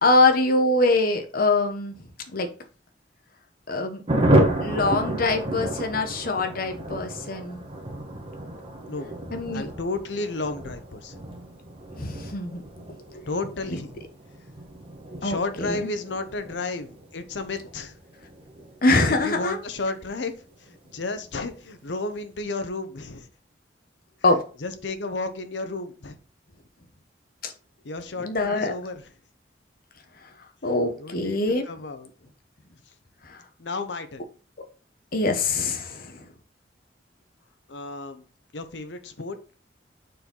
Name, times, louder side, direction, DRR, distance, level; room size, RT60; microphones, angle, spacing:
voice 1, 0.0-1.9 2.3-2.5 3.7-4.0 4.6-7.6 9.3-9.7 12.0-12.6 15.2-15.9 18.8-19.6 24.2-24.4 27.4-27.5 28.2-28.7 30.6-31.7 35.1-36.2, left 2 dB, 55° left, 5 dB, 1.1 m, -23 dB
Thunder, 4.1-20.2 20.5-20.6 20.9-21.0 21.3-21.7, right 1 dB, 30° right, 1.5 m, -30 dB
voice 2, 9.5-11.1 13.3-13.9 15.2-17.9 19.1-23.3 24.3-26.2 27.8-29.1 31.0-31.4 31.7-32.1 33.6-34.2 37.7-38.2 38.5-39.4, left 3 dB, 85° left, 9 dB, 0.9 m, -32 dB
6.5 x 4.5 x 3.8 m, 0.36 s
head